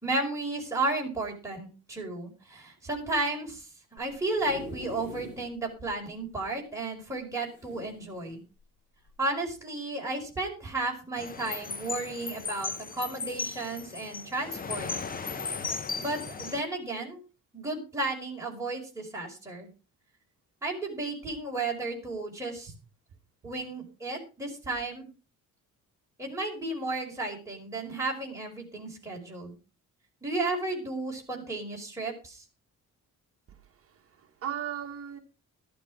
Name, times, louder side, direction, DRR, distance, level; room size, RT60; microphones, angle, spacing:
voice 1, 0.0-8.4 9.2-14.9 16.0-17.2 17.5-19.7 20.6-22.7 23.4-25.1 26.2-29.6 30.2-32.4, right 2 dB, 10° right, -1 dB, 5.0 m, -33 dB
sound 1, 4.0-5.5 6.0-6.1 6.2-6.3 7.5-8.4 9.1-9.3, left 1 dB, 65° left, 7.7 m, -44 dB
sound 2, 11.2-16.6, left 5 dB, 25° left, 0.8 m, -36 dB
voice 2, 33.5-35.2, right 9 dB, 45° right, 2 dB, 1.4 m, -38 dB
12.0 x 12.0 x 4.8 m, 0.33 s
cardioid pair, 165°, 32 cm